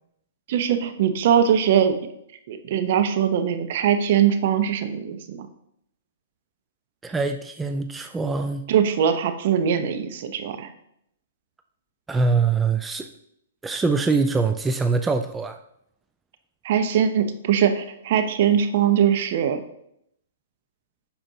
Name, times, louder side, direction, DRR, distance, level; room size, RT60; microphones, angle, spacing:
voice 1, 0.5-2.0 2.5-5.5 8.7-10.7 16.6-19.6, right 8 dB, 55° right, 8 dB, 0.8 m, -21 dB
voice 2, 7.0-8.7 12.1-13.1 13.6-15.6, right 4 dB, 10° right, 6 dB, 0.4 m, -23 dB
11.0 x 4.3 x 2.8 m, 0.74 s
hypercardioid pair, 130°, 0 cm